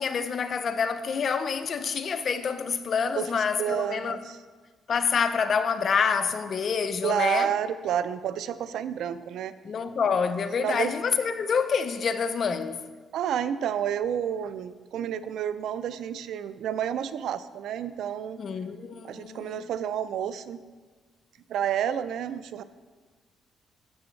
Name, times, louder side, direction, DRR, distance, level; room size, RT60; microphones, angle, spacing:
voice 1, 0.0-4.2 4.9-7.5 9.6-12.8 18.4-19.7, left 6 dB, 50° left, 0.6 m, -27 dB
voice 2, 3.2-4.4 7.0-9.5 10.6-10.9 13.1-18.4 19.0-20.6 21.5-22.6, right 9 dB, 75° right, 0.4 m, -30 dB
12.5 x 7.0 x 3.2 m
cardioid pair, 90°, 0 cm